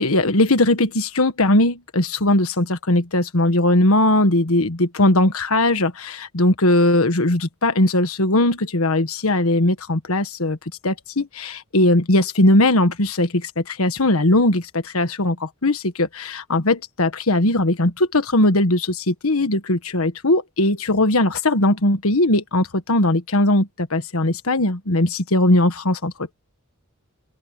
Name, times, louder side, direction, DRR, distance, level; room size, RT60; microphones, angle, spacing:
voice 1, 0.0-10.6 10.8-26.3, left 1 dB, 75° left, 1.5 m, -19 dB
head